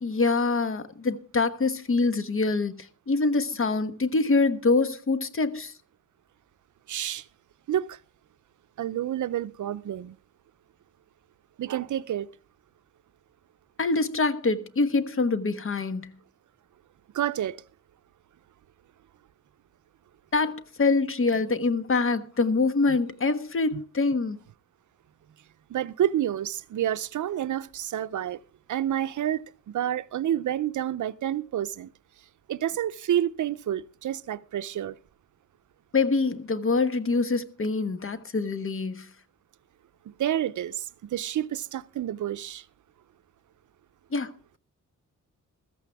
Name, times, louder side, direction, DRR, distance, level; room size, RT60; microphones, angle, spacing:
voice 1, 0.0-2.7 3.1-5.7 13.8-16.1 20.3-24.4 35.9-39.1 44.1-44.3, left 3 dB, 45° left, 1.2 m, -25 dB
voice 2, 6.9-7.2 7.7-8.0 8.8-10.2 11.6-12.3 17.1-17.6 23.7-23.8 25.7-28.4 28.7-29.4 29.7-31.9 32.5-35.0 40.2-42.6, right 11 dB, 70° right, 0.6 m, -29 dB
15.0 x 14.0 x 3.5 m
cardioid pair, 100°, 31 cm